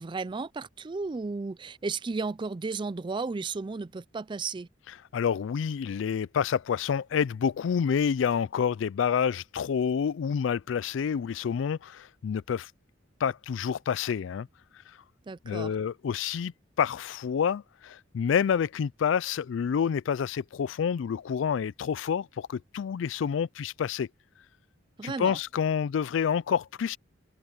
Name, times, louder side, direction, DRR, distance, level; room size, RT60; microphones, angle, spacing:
voice 1, 0.0-4.7 15.3-15.7 25.0-25.4, right 4 dB, 25° right, 0.4 m, -34 dB
voice 2, 4.9-12.7 13.2-14.5 14.9-15.0 15.4-24.1 25.0-27.0, left 7 dB, 75° left, 0.3 m, -28 dB
head